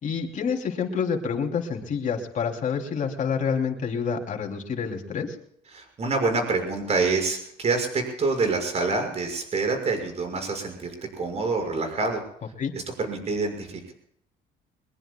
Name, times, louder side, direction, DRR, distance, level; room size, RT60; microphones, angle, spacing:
voice 1, 0.0-5.4 12.6-12.7, left 6 dB, 50° left, 2 dB, 3.4 m, -28 dB
voice 2, 5.7-12.2 13.0-13.9, right 3 dB, 40° right, 4 dB, 6.3 m, -26 dB
23.5 x 22.0 x 2.4 m, 0.69 s
cardioid pair, 110°, 17 cm